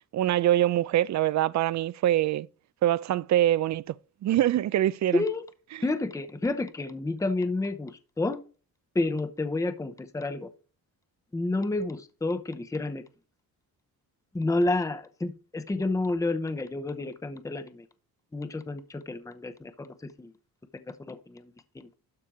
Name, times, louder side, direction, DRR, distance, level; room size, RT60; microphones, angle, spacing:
voice 1, 0.1-2.5 2.8-3.8 4.2-5.2, right 13 dB, 55° right, 0.5 m, -24 dB
voice 2, 5.1-5.4 5.8-8.4 8.9-10.5 11.3-13.0 14.3-17.9 18.3-20.3 20.7-21.9, left 2 dB, 10° left, 0.8 m, -30 dB
12.5 x 4.4 x 4.9 m
cardioid pair, 135°, 35 cm